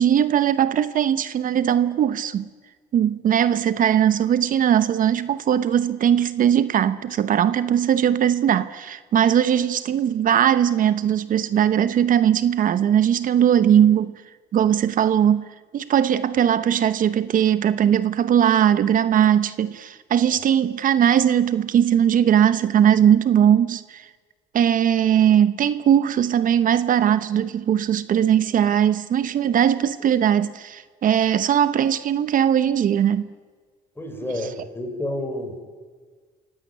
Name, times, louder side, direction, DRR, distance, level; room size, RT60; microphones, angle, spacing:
voice 1, 0.0-2.5 2.9-14.1 14.5-15.4 15.7-24.1 24.5-33.3, right 9 dB, 55° right, 1.0 m, -19 dB
voice 2, 34.0-35.6, left 1 dB, 15° left, 6.0 m, -30 dB
27.5 x 16.5 x 9.5 m
cardioid pair, 110°, 17 cm